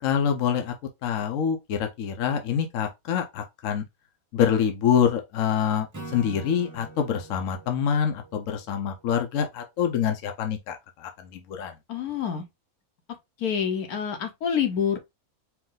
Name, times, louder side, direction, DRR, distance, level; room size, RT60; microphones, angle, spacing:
voice 1, 0.0-0.7 1.0-3.8 4.3-11.7, left 8 dB, 65° left, 1.1 m, -26 dB
Acoustic guitar / Strum, 5.9-9.3, right 2 dB, 20° right, 0.6 m, -44 dB
voice 2, 11.9-12.4 13.4-15.0, left 8 dB, 85° left, 1.4 m, -27 dB
4.7 x 2.5 x 3.8 m
omnidirectional pair, 1.5 m